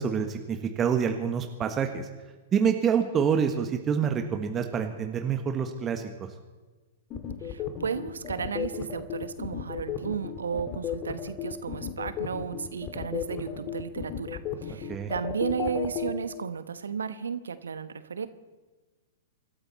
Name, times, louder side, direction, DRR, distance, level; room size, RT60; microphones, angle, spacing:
voice 1, 0.0-2.1 2.5-6.3 14.9-15.1, right 7 dB, 25° right, 5 dB, 1.4 m, -27 dB
sound 1, 7.1-16.1, left 9 dB, 30° left, 2.1 m, -34 dB
voice 2, 7.4-18.3, right 6 dB, 75° right, 13 dB, 1.1 m, -34 dB
25.5 x 13.5 x 4.2 m, 1.3 s
figure-of-eight pair, 105°, 0 cm